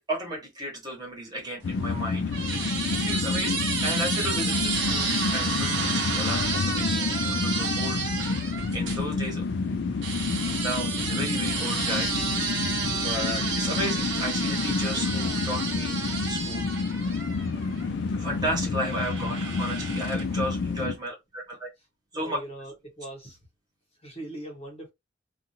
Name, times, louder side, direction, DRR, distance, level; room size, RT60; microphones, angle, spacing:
voice 1, 0.0-2.3 2.9-8.0 8.7-9.5 10.0-12.5 13.0-16.7 18.1-21.7 22.1-22.4, equal, 20° right, 1.3 m, -34 dB
sound 1, 1.6-21.0, left 4 dB, 65° left, 0.4 m, -29 dB
sound 2, 1.7-9.0 10.0-17.9 18.8-20.4, right 5 dB, 85° right, 1.0 m, -31 dB
voice 2, 22.1-23.4 24.0-24.9, right 1 dB, 35° left, 0.9 m, -40 dB
2.6 x 2.5 x 2.7 m
head